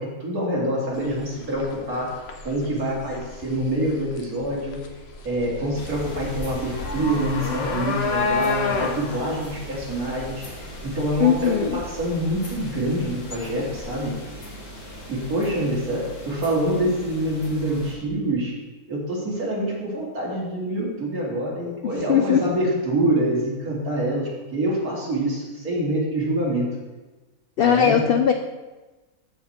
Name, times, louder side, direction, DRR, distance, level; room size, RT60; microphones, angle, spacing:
voice 1, 0.0-2.1 2.4-4.8 5.2-10.4 10.8-14.1 15.1-18.5 18.9-26.6 27.6-28.2, right 1 dB, 70° right, -5 dB, 3.1 m, -26 dB
sound 1, 0.9-14.1, left 4 dB, 50° left, 1.0 m, -31 dB
sound 2, 5.7-17.9, equal, 70° left, 2.3 m, -39 dB
voice 2, 11.2-11.8 21.8-22.4 27.6-28.3, left 8 dB, 85° left, 6 dB, 0.5 m, -19 dB
13.5 x 4.8 x 4.3 m, 1.2 s
omnidirectional pair, 1.6 m